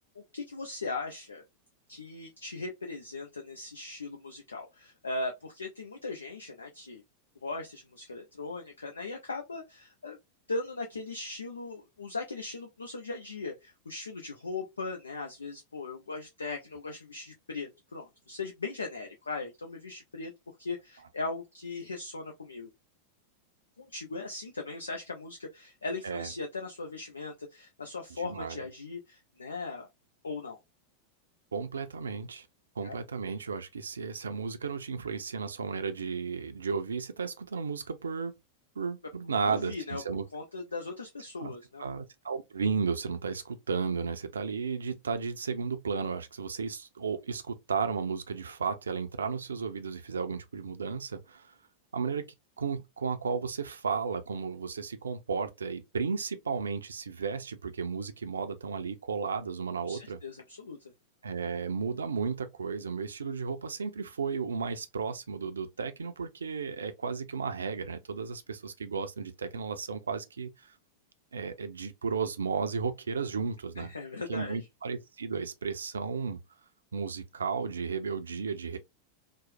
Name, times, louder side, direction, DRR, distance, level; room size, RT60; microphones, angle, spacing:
voice 1, 0.2-1.4 1.9-7.0 7.4-10.2 10.5-20.3 20.6-22.7 23.8-29.9 30.2-30.6 32.8-33.0 39.5-40.0 40.3-41.9 59.8-60.8 73.8-74.6, left 3 dB, 75° left, 0.5 m, -39 dB
voice 2, 28.2-28.6 31.5-32.5 32.8-38.3 38.8-40.2 41.4-41.5 41.8-51.5 51.9-60.2 61.2-70.7 71.3-73.9 74.3-76.4 76.9-78.8, right 5 dB, 70° right, 0.4 m, -34 dB
3.0 x 2.0 x 2.5 m
figure-of-eight pair, 90°, 0 cm